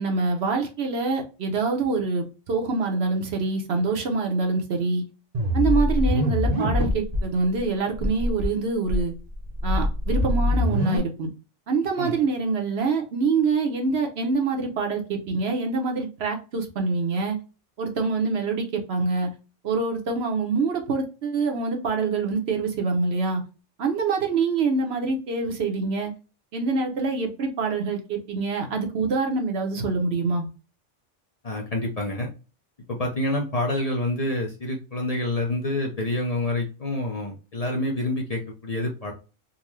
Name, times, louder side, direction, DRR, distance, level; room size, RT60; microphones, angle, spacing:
voice 1, 0.0-5.0 5.5-9.1 9.6-11.3 11.7-17.4 17.8-19.3 19.6-23.4 23.8-26.1 26.5-30.5, right 4 dB, 65° right, 3 dB, 1.0 m, -25 dB
sound 1, 5.3-7.2 7.6-7.7 7.9-8.5 8.9-11.0, left 1 dB, 40° right, 0.8 m, -23 dB
voice 2, 31.4-32.3 32.9-39.1, left 1 dB, 40° left, 0 dB, 0.6 m, -27 dB
3.9 x 2.2 x 3.0 m, 0.32 s
omnidirectional pair, 1.2 m